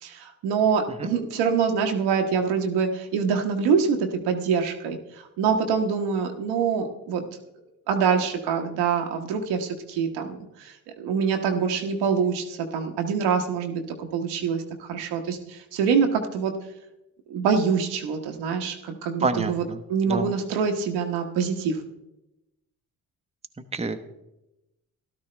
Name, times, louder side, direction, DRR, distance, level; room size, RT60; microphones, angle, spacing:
voice 1, 0.0-5.0 5.4-7.2 7.9-16.5 17.3-19.6 19.9-21.8, right 6 dB, 90° right, 4 dB, 1.2 m, -25 dB
voice 2, 19.2-19.8 20.1-20.3 23.7-24.0, right 3 dB, 15° right, 7 dB, 0.8 m, -27 dB
13.5 x 12.0 x 3.3 m, 0.95 s
supercardioid pair, 70°, 40 cm